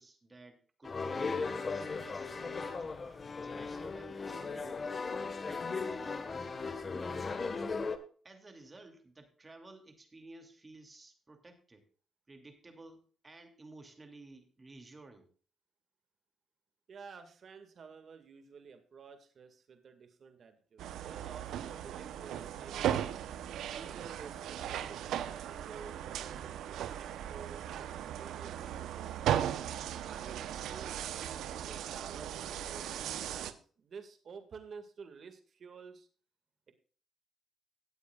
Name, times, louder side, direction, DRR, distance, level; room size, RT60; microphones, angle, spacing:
voice 1, 0.0-3.0 3.4-4.8 5.2-7.3 8.2-11.8 12.3-15.3, right 2 dB, 25° right, 5 dB, 2.7 m, -53 dB
sound 1, 0.8-8.0, left 4 dB, 35° left, 1.5 m, -37 dB
voice 2, 16.9-23.1 23.7-29.3 30.0-36.1, right 5 dB, 50° right, 7 dB, 2.0 m, -51 dB
sound 2, 20.8-33.5, right 10 dB, 80° right, 0.9 m, -37 dB
18.0 x 8.6 x 2.4 m, 0.41 s
cardioid pair, 90°, 0 cm